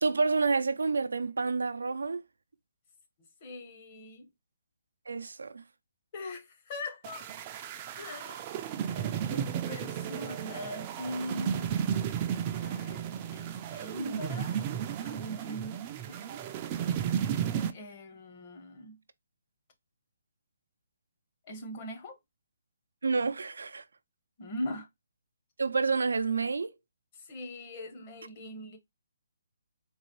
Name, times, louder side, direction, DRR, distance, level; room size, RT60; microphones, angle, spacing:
voice 1, 0.0-2.2 5.1-5.6 23.0-23.8 25.6-26.7, right 4 dB, 85° right, 0.5 m, -29 dB
voice 2, 3.4-4.3 6.1-7.3 7.9-8.4 8.7-11.7 12.5-14.6 15.0-16.4 17.7-19.0 21.4-22.2 24.4-24.9 27.1-28.8, left 1 dB, 35° left, 1.1 m, -41 dB
sound 1, 7.0-17.7, right 9 dB, 25° right, 0.4 m, -33 dB
3.9 x 2.5 x 3.1 m
hypercardioid pair, 155°, 0 cm